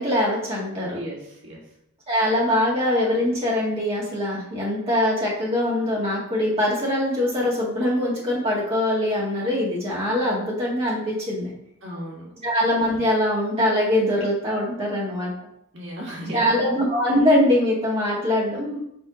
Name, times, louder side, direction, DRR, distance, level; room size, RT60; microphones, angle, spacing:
voice 1, 0.0-1.0 2.1-11.5 12.4-15.3 16.3-18.8, left 1 dB, 25° right, -6 dB, 2.0 m, -22 dB
voice 2, 0.9-1.6 11.8-12.4 15.7-16.7, equal, 65° right, -3 dB, 1.8 m, -35 dB
5.5 x 3.4 x 5.0 m, 0.79 s
head